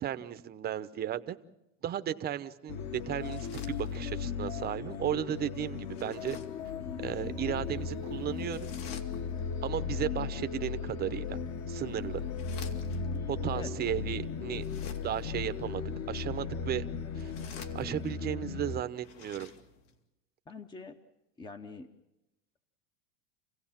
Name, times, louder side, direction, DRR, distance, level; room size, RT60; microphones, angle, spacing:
voice 1, 0.0-1.4 1.8-6.4 7.0-8.7 9.6-11.4 11.7-12.2 13.3-14.6 15.0-16.8 17.2-17.3 17.7-19.5, right 11 dB, 25° right, 11 dB, 0.8 m, -35 dB
sound 1, 2.7-18.8, left 5 dB, 45° left, 1.5 m, -36 dB
sound 2, 3.1-4.3 5.8-6.7 8.4-9.5 11.3-13.2 14.5-15.4 17.0-18.2 18.9-20.0, left 7 dB, 70° left, 2.6 m, -51 dB
voice 2, 20.5-21.0 21.4-21.9, left 4 dB, 10° left, 7 dB, 0.8 m, -44 dB
28.5 x 16.5 x 7.4 m, 0.94 s
supercardioid pair, 145°, 38 cm